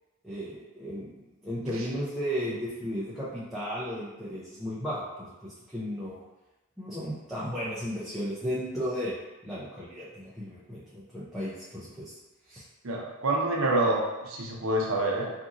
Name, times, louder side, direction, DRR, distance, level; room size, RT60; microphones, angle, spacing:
voice 1, 0.2-1.1 1.4-6.2 6.8-9.1 9.4-12.1 12.5-12.6, equal, ahead, -10 dB, 0.4 m, -34 dB
voice 2, 12.8-15.3, right 2 dB, 65° right, -1 dB, 0.6 m, -27 dB
2.8 x 2.6 x 2.5 m, 1.0 s
head